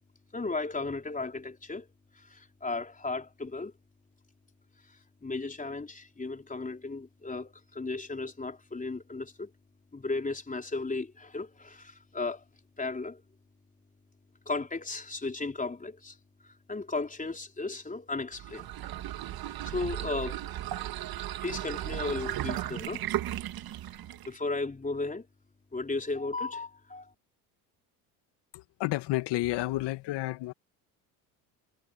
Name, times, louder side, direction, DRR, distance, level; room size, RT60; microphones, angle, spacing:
voice 1, 0.3-1.9 2.2-3.7 5.2-9.5 9.9-12.4 12.8-13.2 14.5-16.2 16.4-18.7 19.6-20.5 21.4-23.1 24.3-25.3 25.7-27.1, left 3 dB, 20° left, 4.0 m, -35 dB
sound 1, 18.3-24.4, right 13 dB, 55° right, 1.9 m, -35 dB
voice 2, 28.5-30.5, left 18 dB, 65° left, 2.3 m, -31 dB
hypercardioid pair, 75°, 44 cm